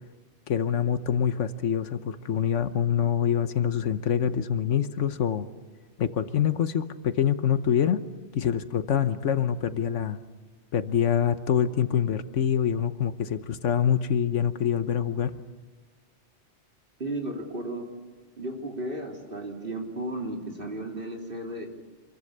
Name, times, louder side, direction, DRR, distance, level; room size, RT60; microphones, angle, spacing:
voice 1, 0.5-5.5 6.0-8.0 8.3-10.2 10.7-15.4, left 8 dB, 85° left, 11 dB, 1.3 m, -25 dB
voice 2, 17.0-17.9 18.4-21.7, right 1 dB, 50° right, 1 dB, 3.8 m, -34 dB
27.0 x 22.5 x 6.8 m, 1.4 s
omnidirectional pair, 1.2 m